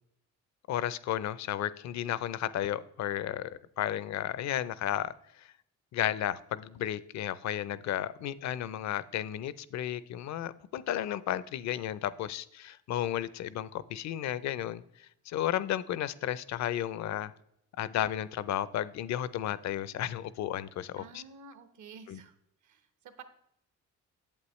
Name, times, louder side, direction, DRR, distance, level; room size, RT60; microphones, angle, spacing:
voice 1, 0.7-3.5 3.8-5.5 5.9-17.3 17.8-21.2 22.1-22.2, left 11 dB, 65° left, 17 dB, 0.5 m, -33 dB
voice 2, 20.9-22.4 22.6-23.2, right 5 dB, 70° right, 10 dB, 1.1 m, -51 dB
8.5 x 7.7 x 3.1 m, 0.76 s
cardioid pair, 90°, 30 cm